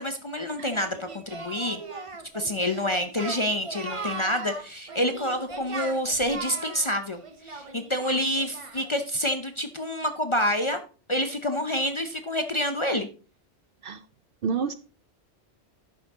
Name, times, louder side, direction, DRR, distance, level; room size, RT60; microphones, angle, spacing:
voice 1, 0.0-1.8 2.3-10.8 11.1-13.1, equal, 35° left, 0.6 m, -28 dB
Singing, 0.7-9.0, right 3 dB, 30° right, 0.9 m, -38 dB
voice 2, 14.4-14.7, right 5 dB, 60° right, 0.6 m, -28 dB
11.0 x 6.4 x 3.5 m
omnidirectional pair, 1.2 m